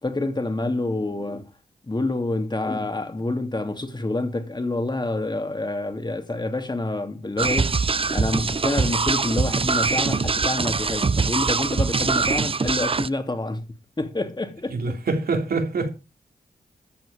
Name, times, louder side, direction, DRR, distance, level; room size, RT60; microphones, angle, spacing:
voice 1, 0.0-1.5 1.9-7.7 8.1-13.7 14.0-15.0, left 2 dB, 30° left, 2.7 m, -27 dB
sound 1, 7.4-13.1, right 4 dB, 35° right, 0.7 m, -23 dB
voice 2, 14.7-15.9, right 3 dB, 80° right, 3.4 m, -25 dB
14.0 x 8.4 x 5.1 m
cardioid pair, 55°, 16 cm